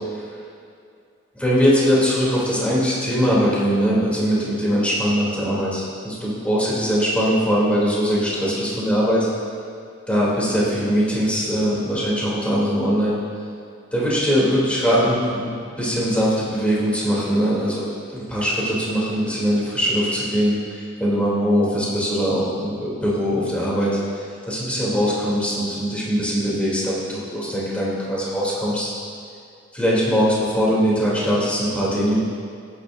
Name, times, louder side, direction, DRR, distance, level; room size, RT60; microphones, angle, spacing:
voice 1, 1.3-9.3 10.1-13.2 13.9-20.5 21.0-23.9 24.5-28.9 29.7-32.2, equal, 5° left, -7 dB, 3.0 m, -21 dB
18.5 x 9.8 x 2.6 m, 2.3 s
head